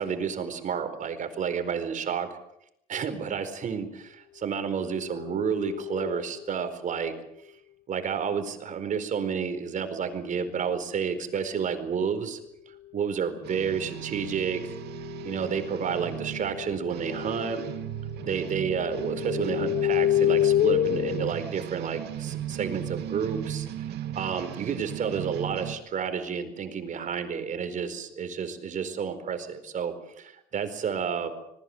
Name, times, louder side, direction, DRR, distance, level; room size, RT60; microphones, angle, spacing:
voice 1, 0.0-2.3 2.9-7.1 7.9-12.4 12.9-14.8 15.2-17.6 18.2-23.7 24.1-31.3, right 7 dB, 50° right, 9 dB, 4.5 m, -30 dB
sound 1, 4.9-6.4 14.2-17.8 18.1-21.3, left 12 dB, 60° left, 0.9 m, -29 dB
sound 2, 13.4-25.8, right 11 dB, 75° right, 2.7 m, -37 dB
26.5 x 20.5 x 8.0 m, 0.78 s
cardioid pair, 110°, 17 cm